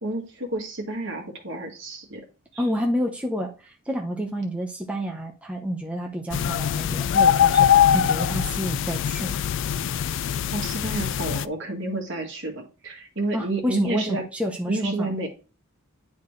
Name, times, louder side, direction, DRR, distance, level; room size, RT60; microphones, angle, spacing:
voice 1, 0.0-2.2 2.5-2.6 10.5-14.2 14.7-15.3, right 2 dB, 60° right, 1 dB, 1.9 m, -30 dB
voice 2, 2.6-9.4 13.3-15.2, equal, 5° right, 0 dB, 0.7 m, -29 dB
sound 1, 6.3-11.5, left 9 dB, 60° left, 0.3 m, -22 dB
10.0 x 4.1 x 3.2 m, 0.34 s
head